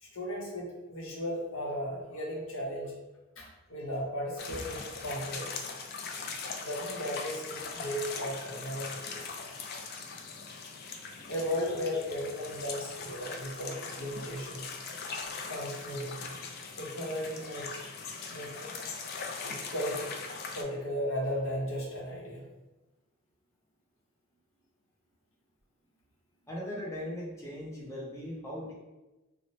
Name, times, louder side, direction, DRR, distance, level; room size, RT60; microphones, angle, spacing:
voice 1, 0.0-3.0 3.4-5.6 6.6-9.2 11.3-14.7 15.4-16.3 16.8-17.7 18.2-18.7 19.4-20.1 20.5-22.5, equal, 75° left, -3 dB, 0.8 m, -36 dB
sound 1, 4.4-20.6, left 4 dB, 50° left, 0.3 m, -41 dB
voice 2, 26.5-28.7, left 1 dB, 15° left, -5 dB, 0.6 m, -39 dB
2.9 x 2.0 x 3.0 m, 1.1 s
head